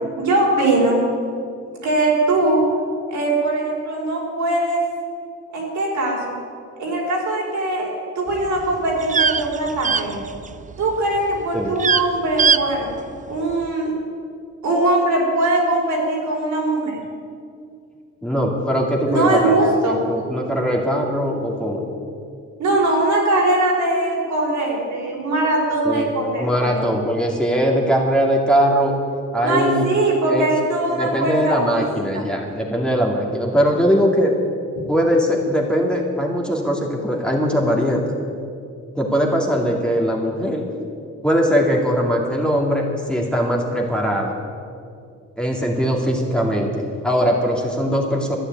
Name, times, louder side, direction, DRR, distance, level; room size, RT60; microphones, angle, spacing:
voice 1, 0.2-1.0 1.8-2.6 3.1-4.8 5.5-6.2 6.8-7.9 8.2-10.2 10.8-12.9 13.3-13.9 14.6-17.0 19.1-20.0 22.6-26.8 29.4-31.9 32.1-32.2, right 2 dB, 75° right, -2 dB, 4.7 m, -21 dB
sound 1, 8.3-10.7 11.0-11.4 11.7-12.0 12.4-12.6 12.9-13.0, right 6 dB, 25° right, 0.5 m, -20 dB
voice 2, 18.2-19.7 20.1-21.8 25.8-26.1 26.4-29.0 29.3-29.9 30.3-30.5 30.9-34.3 34.9-38.0 38.9-40.7 41.2-44.3 45.4-48.4, equal, 5° left, -1 dB, 2.5 m, -20 dB
12.0 x 9.7 x 9.1 m, 2.3 s
cardioid pair, 90°, 30 cm